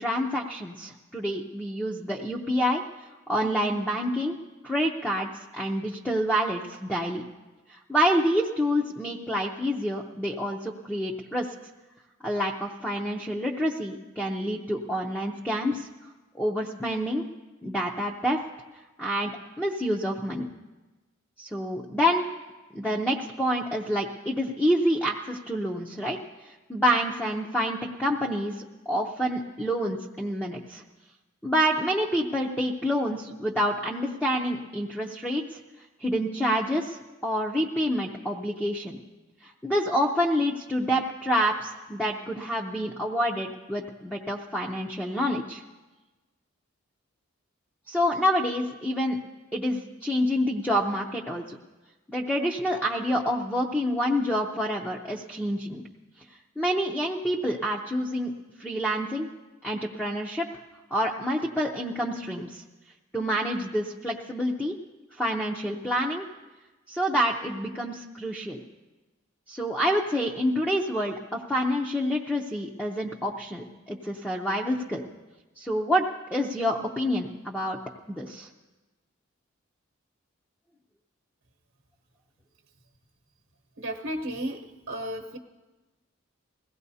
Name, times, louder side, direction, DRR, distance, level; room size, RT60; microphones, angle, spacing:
voice 1, 0.0-2.8 3.3-4.4 4.6-7.2 7.7-11.5 12.2-15.9 16.3-17.3 17.6-18.4 19.0-19.3 19.6-20.5 21.4-22.3 22.7-26.2 26.4-30.8 31.4-35.6 36.0-39.0 39.4-45.6 47.9-49.2 49.5-51.6 52.1-55.8 56.6-58.3 58.6-59.3 59.6-60.5 60.9-62.6 63.1-64.7 65.2-66.3 66.9-68.6 69.5-75.0 75.6-77.8 78.1-78.5, equal, 5° left, -2 dB, 0.6 m, -27 dB
voice 2, 83.8-84.6 84.9-85.4, right 1 dB, 65° right, 1 dB, 1.0 m, -33 dB
21.0 x 16.5 x 2.8 m, 1.2 s
head